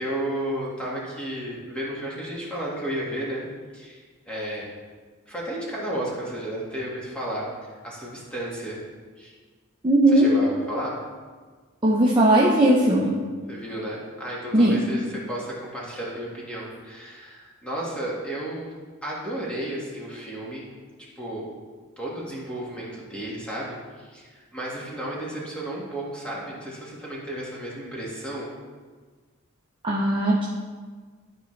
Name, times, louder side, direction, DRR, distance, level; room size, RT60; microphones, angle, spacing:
voice 1, 0.0-3.4 3.7-4.7 5.3-7.5 7.8-8.8 9.2-9.3 10.1-10.9 13.5-18.7 19.0-20.7 21.2-21.5 22.0-28.5, right 1 dB, 5° left, -6 dB, 1.8 m, -33 dB
voice 2, 9.8-10.4 11.8-13.2 14.5-14.8 29.8-30.4, right 1 dB, 25° right, -4 dB, 0.8 m, -18 dB
12.5 x 5.2 x 3.3 m, 1.5 s
head